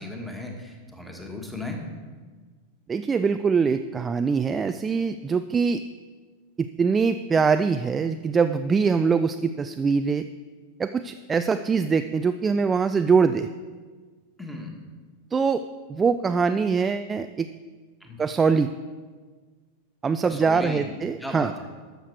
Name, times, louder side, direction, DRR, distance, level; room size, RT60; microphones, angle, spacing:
voice 1, 0.0-1.8 14.4-14.7 18.0-18.2 20.2-20.8 21.2-21.5, left 2 dB, ahead, 1 dB, 1.6 m, -36 dB
voice 2, 2.9-5.8 6.6-10.3 10.8-13.5 15.3-15.6 15.9-17.5 18.2-18.7 20.0-21.5, right 5 dB, 15° right, 10 dB, 0.3 m, -23 dB
12.5 x 6.6 x 4.7 m, 1.4 s
figure-of-eight pair, 90°, 0 cm